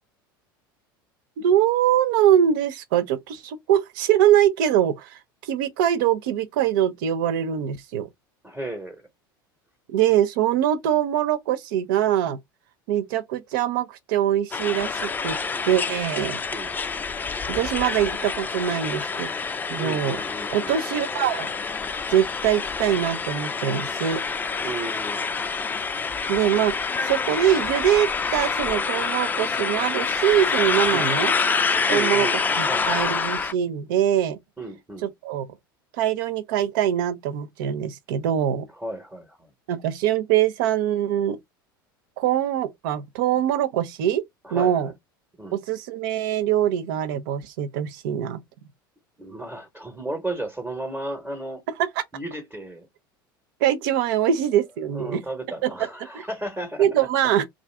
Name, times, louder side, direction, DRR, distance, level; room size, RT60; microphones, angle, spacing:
voice 1, 1.4-8.1 9.9-12.4 12.9-15.4 15.7-16.4 17.5-19.3 19.7-20.2 20.5-21.5 22.1-24.2 26.3-26.7 27.0-31.3 31.9-32.3 32.6-34.4 35.0-35.5 35.9-38.7 39.7-41.4 42.2-44.2 44.5-44.9 45.5-48.4 52.0-52.1 53.6-55.2 55.6-55.7 56.8-57.5, right 10 dB, 65° right, 0.5 m, -23 dB
voice 2, 8.4-9.1 16.5-16.7 19.8-20.8 24.6-25.2 30.9-31.3 31.9-33.1 34.6-35.1 38.8-39.5 44.4-44.9 45.4-45.6 49.2-51.6 52.1-52.9 54.9-56.9, right 1 dB, 15° right, 1.0 m, -34 dB
sound 1, 14.5-33.5, left 5 dB, 15° left, 0.4 m, -27 dB
2.4 x 2.4 x 3.2 m
hypercardioid pair, 80°, 12 cm